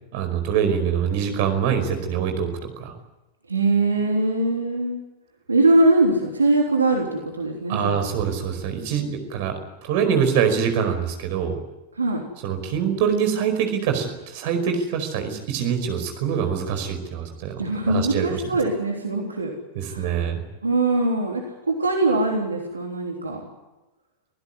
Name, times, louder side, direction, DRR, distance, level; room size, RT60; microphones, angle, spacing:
voice 1, 0.1-2.9 7.7-11.6 12.4-18.4 19.7-20.4, right 7 dB, 50° right, 6 dB, 5.1 m, -24 dB
voice 2, 3.5-5.0 5.5-8.0 12.0-12.3 17.6-19.5 19.9-20.1 20.6-23.4, right 2 dB, 75° right, 1 dB, 3.4 m, -22 dB
26.0 x 16.0 x 9.8 m, 1.0 s
figure-of-eight pair, 90°, 0 cm